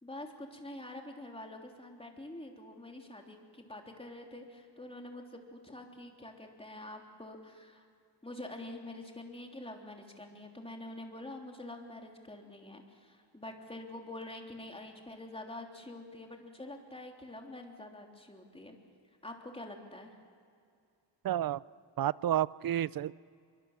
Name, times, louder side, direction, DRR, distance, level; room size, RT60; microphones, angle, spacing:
voice 1, 0.0-7.9 8.2-18.8 19.2-20.2, left 1 dB, 15° left, 2 dB, 3.3 m, -46 dB
voice 2, 21.2-21.6 22.0-23.1, right 11 dB, 55° right, 20 dB, 0.5 m, -30 dB
26.0 x 23.5 x 7.4 m, 2.3 s
wide cardioid pair, 110°, 44 cm